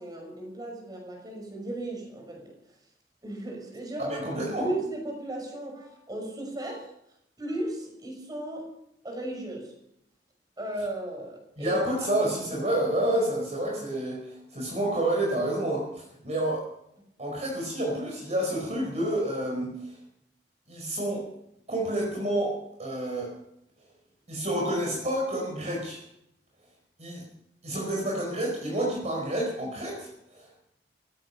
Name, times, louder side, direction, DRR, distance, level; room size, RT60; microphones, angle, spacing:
voice 1, 0.0-2.5 3.2-6.9 7.4-8.7 9.0-9.7 10.6-12.1, right 1 dB, 25° right, 1 dB, 6.1 m, -36 dB
voice 2, 4.0-4.7 11.6-16.6 17.2-20.0 20.7-21.2 21.7-23.3 24.3-26.0 27.0-27.2 27.6-30.5, right 1 dB, 40° right, -1 dB, 4.9 m, -29 dB
16.5 x 15.5 x 5.7 m, 0.77 s
head